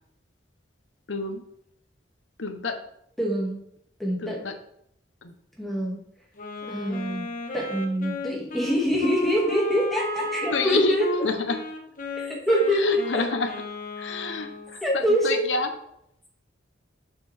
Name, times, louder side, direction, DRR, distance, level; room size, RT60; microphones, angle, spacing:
voice 1, 1.1-1.4 2.4-2.8 4.2-4.5 5.2-5.3 10.5-11.6 12.7-13.5 14.0-15.7, left 3 dB, 90° left, 5 dB, 1.0 m, -28 dB
voice 2, 3.2-3.6 4.0-4.5 5.6-6.0 6.7-7.3 7.5-11.1 12.2-13.2 14.8-15.4, equal, ahead, -4 dB, 2.1 m, -25 dB
Wind instrument woodwind instrument, 6.4-14.8, left 1 dB, 45° left, 1.2 m, -34 dB
6.9 x 6.7 x 3.5 m, 0.72 s
head